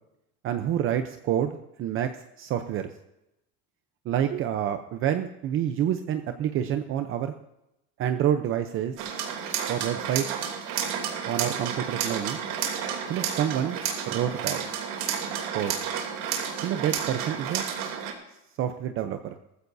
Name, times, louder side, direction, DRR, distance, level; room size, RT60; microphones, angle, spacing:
voice 1, 0.4-2.1 2.4-2.9 4.0-7.3 8.0-9.0 9.7-10.3 11.3-12.4 13.1-13.8 14.1-14.6 15.5-15.8 16.6-17.6 18.6-19.4, right 10 dB, 40° right, 7 dB, 0.7 m, -28 dB
sound 1, 9.0-18.1, right 8 dB, 70° right, 3.0 m, -31 dB
19.0 x 15.0 x 2.7 m, 0.89 s
cardioid pair, 175°, 33 cm